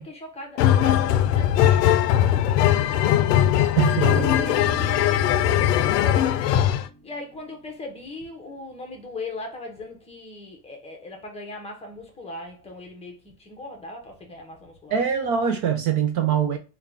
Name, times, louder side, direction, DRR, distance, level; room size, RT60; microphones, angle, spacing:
voice 1, 0.0-3.5 3.9-6.5 7.0-15.0, left 2 dB, 15° left, 0.7 m, -39 dB
sound 1, 0.6-6.9, left 11 dB, 85° left, 0.5 m, -20 dB
voice 2, 3.8-4.1 14.9-16.6, right 8 dB, 40° right, 0.5 m, -23 dB
Drum, 4.0-7.4, right 2 dB, 25° right, 0.9 m, -35 dB
3.6 x 2.3 x 3.4 m
supercardioid pair, 135°, 47 cm